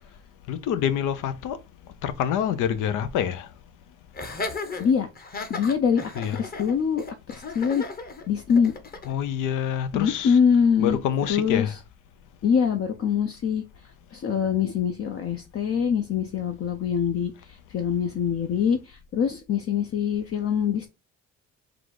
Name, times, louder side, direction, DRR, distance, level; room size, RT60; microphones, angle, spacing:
voice 1, 0.5-1.6 2.0-3.5 6.2-6.4 9.1-10.4 10.8-11.7, left 9 dB, 90° left, 0.6 m, -26 dB
Laughter, 4.1-9.1, left 3 dB, 30° left, 0.9 m, -35 dB
voice 2, 4.8-5.1 5.5-7.8 8.3-8.7 9.9-11.0 11.3-11.8 12.4-13.6 14.1-20.9, left 7 dB, 50° left, 0.6 m, -24 dB
3.9 x 2.4 x 4.7 m
cardioid pair, 90°, 30 cm